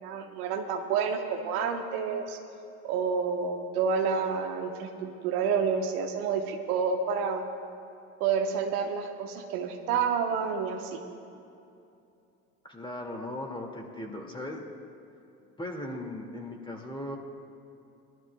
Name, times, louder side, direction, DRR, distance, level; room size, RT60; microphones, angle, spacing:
voice 1, 0.0-2.4 2.8-7.4 8.2-11.0, right 6 dB, 75° right, 3 dB, 1.1 m, -29 dB
voice 2, 12.6-14.6 15.6-17.2, left 1 dB, 10° left, 1 dB, 2.2 m, -38 dB
21.0 x 12.5 x 2.3 m, 2.6 s
hypercardioid pair, 70°, 46 cm